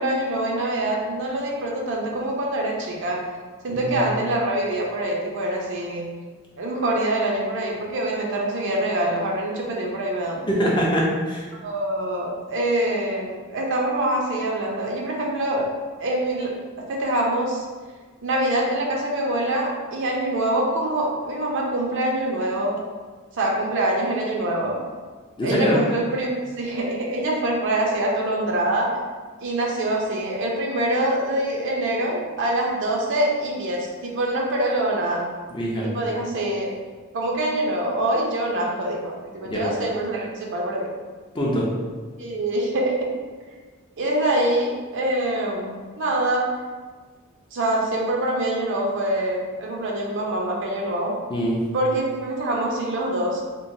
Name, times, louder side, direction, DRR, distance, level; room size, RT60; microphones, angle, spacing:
voice 1, 0.0-3.2 3.6-6.1 6.6-10.5 11.6-15.7 16.0-16.5 16.9-17.7 18.2-22.8 23.4-24.8 25.4-28.9 29.4-35.2 35.8-36.7 37.1-40.9 42.2-43.1 44.0-46.5 47.5-51.1 51.7-53.4, right 1 dB, 60° right, -2 dB, 0.5 m, -25 dB
voice 2, 3.7-4.1 10.5-11.5 25.4-25.8 35.5-35.9 39.5-39.6 41.3-41.7 51.3-51.6, equal, 20° left, -4 dB, 0.5 m, -23 dB
2.9 x 2.1 x 2.6 m, 1.4 s
head